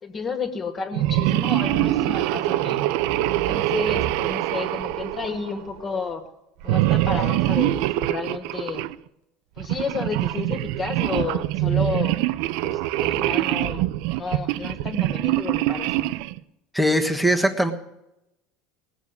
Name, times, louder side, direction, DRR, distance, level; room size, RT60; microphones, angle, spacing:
voice 1, 0.0-2.8 3.3-6.2 6.6-8.9 9.6-12.2 12.6-16.1, left 4 dB, 25° left, 7 dB, 2.0 m, -31 dB
sound 1, 0.9-5.8 6.6-8.9 9.6-16.4, right 15 dB, 70° right, 0.6 m, -24 dB
voice 2, 16.7-17.7, equal, ahead, 3 dB, 1.3 m, -20 dB
18.5 x 7.2 x 9.6 m, 0.86 s
cardioid pair, 140°, 0 cm